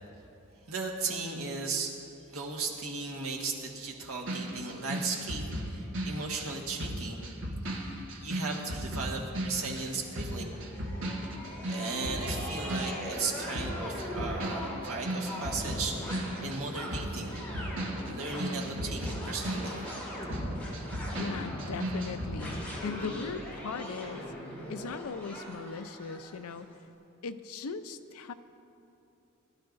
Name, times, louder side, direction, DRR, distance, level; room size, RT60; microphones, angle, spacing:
voice 1, 0.7-2.0 2.3-7.3 7.6-7.9 8.2-10.5 11.7-17.4 18.0-19.8, right 4 dB, 80° right, -1 dB, 1.6 m, -36 dB
sound 1, 4.3-13.3 13.5-22.5, right 1 dB, 60° right, 1.5 m, -36 dB
sound 2, 9.5-26.6, equal, 10° left, 2.8 m, -40 dB
voice 2, 21.1-24.2 24.7-26.7 27.2-28.3, left 5 dB, 85° left, 10 dB, 0.5 m, -38 dB
19.5 x 12.0 x 2.6 m, 2.8 s
head